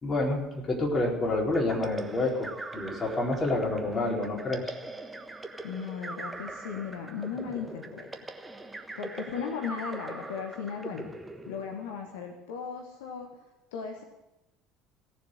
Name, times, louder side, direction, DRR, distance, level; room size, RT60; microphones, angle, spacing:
voice 1, 0.0-4.7, left 2 dB, 30° left, -1 dB, 4.3 m, -28 dB
sound 1, 1.5-12.1, right 2 dB, 15° right, 1.3 m, -41 dB
voice 2, 5.6-8.2 9.0-11.1 11.4-13.3 13.7-14.0, left 6 dB, 65° left, 3 dB, 1.5 m, -37 dB
17.0 x 7.5 x 9.1 m, 0.96 s
figure-of-eight pair, 60°, 0 cm